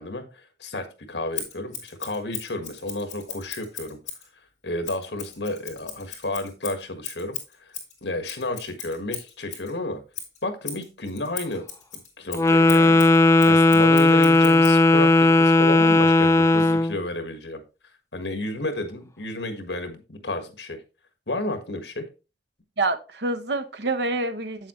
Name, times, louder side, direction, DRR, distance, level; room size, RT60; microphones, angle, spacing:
voice 1, 0.0-4.0 4.6-7.7 8.0-10.0 10.4-11.6 12.2-13.0 13.5-17.6 18.1-20.8 21.3-22.0, left 2 dB, 75° left, 1.6 m, -31 dB
Scissors, 1.3-4.3 4.8-9.7 10.1-14.8, left 8 dB, 45° left, 3.0 m, -38 dB
Wind instrument woodwind instrument, 12.3-16.9, left 2 dB, 15° left, 0.3 m, -16 dB
voice 2, 22.8-24.7, right 3 dB, 70° right, 0.9 m, -27 dB
8.5 x 7.3 x 3.1 m
head